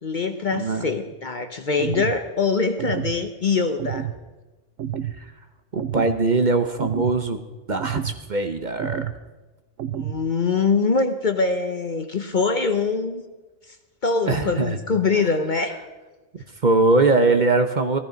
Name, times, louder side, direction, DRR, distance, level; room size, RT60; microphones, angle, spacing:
voice 1, 0.0-4.1 9.9-13.2 14.0-15.8, left 4 dB, 45° left, 8 dB, 0.8 m, -23 dB
voice 2, 0.5-0.9 5.2-5.3 5.7-7.4 7.7-9.0 14.3-14.8 16.6-18.0, right 3 dB, 40° right, 7 dB, 0.9 m, -21 dB
sound 1, 1.8-2.2 2.8-3.2 3.8-4.2 4.8-5.2 5.8-6.2 6.8-7.2 7.8-8.2 8.8-9.2 9.8-10.2, right 10 dB, 80° right, 1.0 m, -29 dB
16.0 x 13.5 x 5.2 m, 1.2 s
omnidirectional pair, 1.3 m